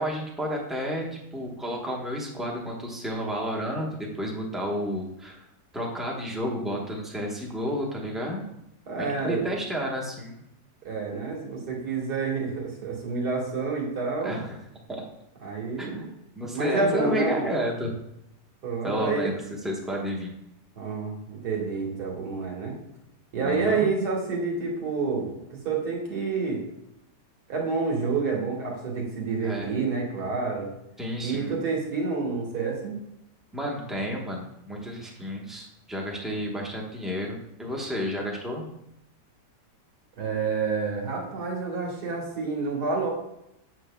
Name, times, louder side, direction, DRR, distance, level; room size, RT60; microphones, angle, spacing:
voice 1, 0.0-5.5 5.7-8.4 9.0-10.4 14.2-14.6 14.9-15.0 15.8-16.1 16.4-17.9 18.8-19.4 19.6-20.3 23.4-23.9 29.4-29.7 31.0-31.6 33.5-38.6, equal, ahead, -1 dB, 0.7 m, -31 dB
voice 2, 8.9-9.5 10.8-14.4 15.4-16.1 16.5-17.5 18.6-19.3 20.8-22.8 23.3-26.6 27.5-30.7 31.2-32.9 40.2-43.1, right 4 dB, 70° right, -1 dB, 2.0 m, -28 dB
7.5 x 6.9 x 2.2 m, 0.82 s
omnidirectional pair, 1.8 m